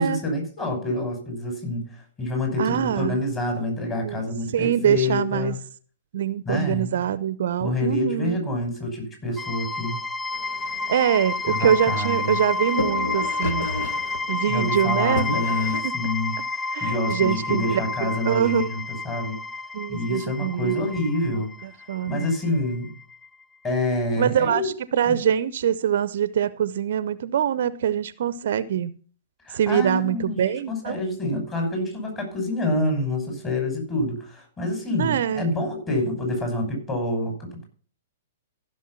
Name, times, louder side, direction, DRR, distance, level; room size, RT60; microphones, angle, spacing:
voice 1, 0.0-5.6 6.4-7.0 7.6-10.0 11.5-12.4 14.5-16.3 16.8-19.4 19.9-21.5 22.0-22.9 23.6-24.7 25.0-25.2 29.5-37.6, left 1 dB, 20° left, 2 dB, 6.1 m, -27 dB
voice 2, 2.6-3.2 4.0-4.2 4.5-5.6 6.1-8.4 10.9-13.7 14.3-15.3 15.8-15.9 16.7-18.7 19.7-20.7 21.3-22.3 24.2-28.9 29.5-31.0 35.0-35.4, right 9 dB, 55° right, 17 dB, 0.6 m, -24 dB
sound 1, 9.4-23.3, left 3 dB, ahead, 0.6 m, -30 dB
sound 2, 10.3-15.8, left 3 dB, 60° left, 1.6 m, -33 dB
15.0 x 6.6 x 5.6 m, 0.42 s
figure-of-eight pair, 110°, 0 cm